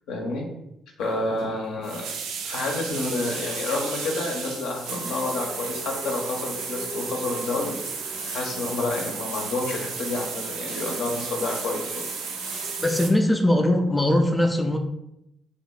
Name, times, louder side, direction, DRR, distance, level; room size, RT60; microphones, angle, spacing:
voice 1, 0.1-0.5 1.0-2.1 2.4-12.0, left 2 dB, 65° left, 1 dB, 0.6 m, -29 dB
sound 1, 1.4-1.5 1.8-13.1, right 6 dB, 65° right, 0.4 m, -34 dB
sound 2, 2.9-13.1, right 1 dB, 85° right, 0.8 m, -38 dB
voice 2, 12.8-14.8, left 1 dB, 10° left, 3 dB, 0.4 m, -21 dB
2.7 x 2.4 x 3.6 m, 0.83 s
figure-of-eight pair, 40°, 0 cm